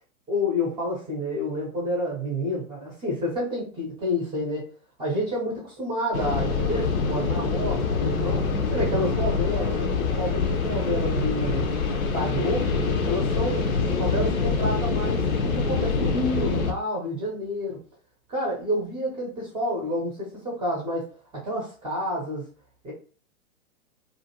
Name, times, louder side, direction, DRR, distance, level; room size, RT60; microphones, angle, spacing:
voice 1, 0.3-4.7 5.0-11.7 12.1-13.7 14.0-17.8 18.3-22.4 22.8-22.9, equal, 10° right, -3 dB, 0.6 m, -29 dB
sound 1, 6.1-16.7, left 4 dB, 80° left, 0.7 m, -25 dB
2.5 x 2.2 x 2.8 m, 0.39 s
hypercardioid pair, 115°, 41 cm